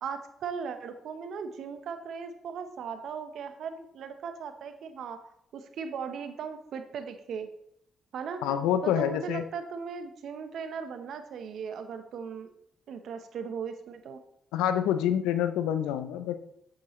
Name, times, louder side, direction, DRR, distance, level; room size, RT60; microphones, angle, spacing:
voice 1, 0.0-5.2 5.5-7.5 8.1-8.4 8.8-12.5 12.9-14.2, right 6 dB, 70° right, 8 dB, 1.1 m, -38 dB
voice 2, 8.4-9.4 14.5-16.3, left 10 dB, 85° left, 10 dB, 0.6 m, -27 dB
8.6 x 8.5 x 3.2 m, 0.74 s
supercardioid pair, 50°, 0 cm